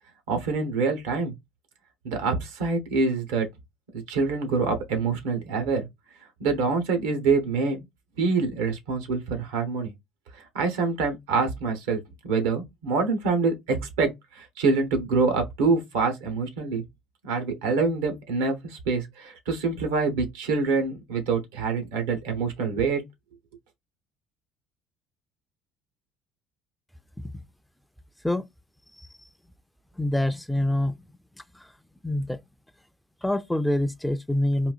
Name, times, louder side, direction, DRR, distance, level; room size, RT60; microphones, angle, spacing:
voice 1, 0.3-1.3 2.0-3.5 4.1-5.9 6.4-7.8 8.2-9.9 10.3-16.8 17.2-23.0, right 4 dB, 90° right, 0.8 m, -26 dB
voice 2, 30.0-30.9 31.6-31.7 32.0-32.4 33.2-34.7, left 1 dB, 5° left, 0.3 m, -25 dB
3.8 x 2.4 x 2.3 m
supercardioid pair, 85°, 0 cm